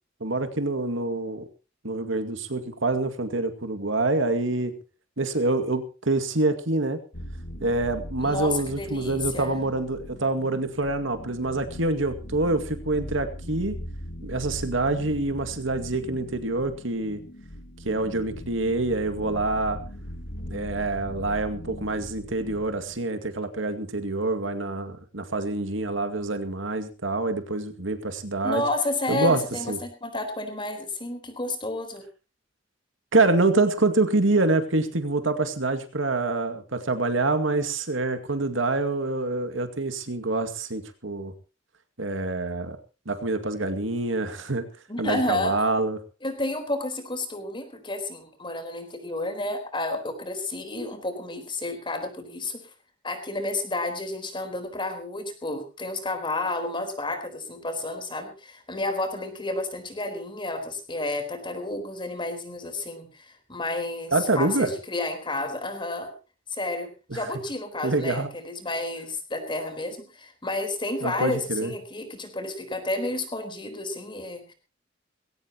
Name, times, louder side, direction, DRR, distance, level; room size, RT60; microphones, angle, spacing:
voice 1, 0.2-1.5 1.8-4.8 5.2-7.0 7.6-13.8 14.2-17.2 17.8-19.8 20.5-28.6 29.1-29.4 29.7-29.8 33.1-41.3 42.0-42.8 43.1-44.7 45.0-46.0 64.1-64.7 67.1-67.2 67.8-68.3 71.0-71.7, right 2 dB, 80° right, 8 dB, 2.2 m, -26 dB
sound 1, 7.1-23.1, equal, 65° left, 2.2 m, -40 dB
voice 2, 8.2-9.5 28.4-32.0 44.9-45.5 46.2-52.6 53.0-66.1 66.5-74.5, left 2 dB, 25° left, 7 dB, 4.2 m, -31 dB
20.0 x 17.5 x 3.0 m, 0.34 s
head